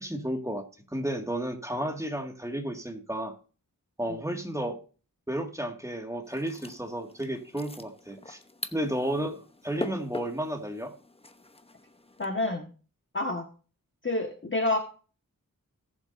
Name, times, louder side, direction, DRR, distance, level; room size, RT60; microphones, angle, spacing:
voice 1, 0.0-3.3 4.0-4.8 5.3-8.4 8.7-10.9, right 1 dB, 10° right, 4 dB, 2.1 m, -32 dB
sound 1, 6.2-12.3, left 2 dB, 15° left, 0.9 m, -43 dB
voice 2, 12.2-12.7 13.1-13.4 14.0-14.8, left 2 dB, 35° left, 3 dB, 1.6 m, -28 dB
18.5 x 7.3 x 2.7 m, 0.37 s
wide cardioid pair, 65°, 34 cm